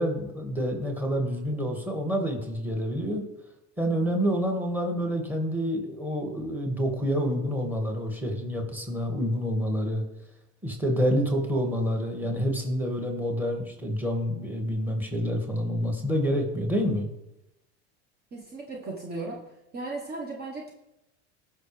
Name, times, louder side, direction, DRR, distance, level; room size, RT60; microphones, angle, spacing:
voice 1, 0.0-3.2 3.8-10.0 10.6-17.1, equal, 5° right, 2 dB, 2.1 m, -28 dB
voice 2, 18.3-19.4 19.7-20.7, right 3 dB, 30° right, 0 dB, 1.3 m, -36 dB
16.5 x 6.1 x 3.4 m, 0.90 s
supercardioid pair, 125°, 33 cm